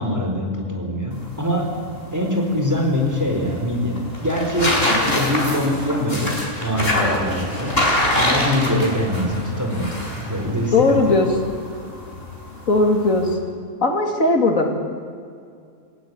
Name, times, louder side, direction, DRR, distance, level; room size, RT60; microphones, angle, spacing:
voice 1, 0.0-1.8 2.1-11.2, left 1 dB, 10° right, 1 dB, 4.3 m, -23 dB
sound 1, 1.1-13.3, left 1 dB, 45° left, 5.2 m, -25 dB
voice 2, 10.7-11.3 12.7-13.4 13.8-14.7, left 2 dB, 85° left, 3 dB, 3.0 m, -17 dB
28.0 x 16.0 x 9.7 m, 2.3 s
omnidirectional pair, 1.4 m